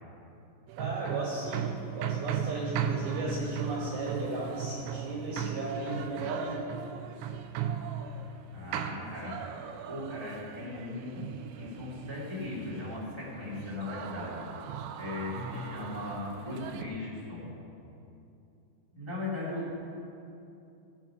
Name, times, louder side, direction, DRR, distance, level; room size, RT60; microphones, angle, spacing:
sound 1, 0.7-16.8, right 8 dB, 85° right, 3.0 m, -37 dB
voice 1, 0.8-6.7 15.2-15.6 19.5-19.7, right 2 dB, 65° right, -4 dB, 3.0 m, -35 dB
voice 2, 3.0-3.4 8.5-11.3 11.5-14.4 15.0-17.5 18.9-19.7, left 2 dB, 15° right, -9 dB, 0.9 m, -38 dB
14.5 x 9.1 x 5.9 m, 2.8 s
omnidirectional pair, 5.4 m